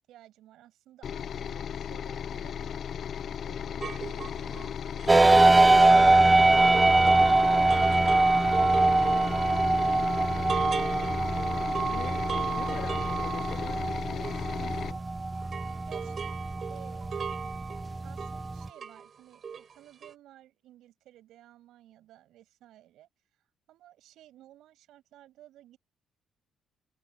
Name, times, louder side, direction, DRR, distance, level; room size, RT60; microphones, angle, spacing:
voice 1, 0.0-2.8 15.9-17.3 18.0-25.8, right 13 dB, 85° right, 7.5 m, -56 dB
sound 1, 1.0-14.9, left 8 dB, 50° left, 0.7 m, -36 dB
sound 2, 3.8-15.1 15.3-19.1 19.3-19.8 20.0-20.1, right 7 dB, 45° right, 4.8 m, -38 dB
sound 3, 5.1-18.7, right 2 dB, 15° right, 0.5 m, -23 dB
voice 2, 11.9-15.0, left 12 dB, 80° left, 2.6 m, -46 dB
cardioid pair, 135°, 0 cm